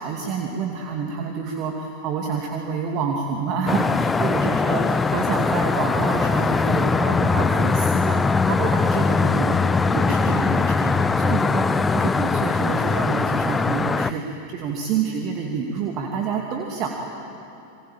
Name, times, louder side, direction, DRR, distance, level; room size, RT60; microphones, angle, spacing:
voice 1, 0.0-16.9, right 5 dB, 40° right, 1 dB, 2.4 m, -28 dB
sound 1, 3.7-14.1, left 4 dB, 15° left, 0.7 m, -21 dB
28.0 x 23.0 x 9.0 m, 2.8 s
figure-of-eight pair, 90°, 0 cm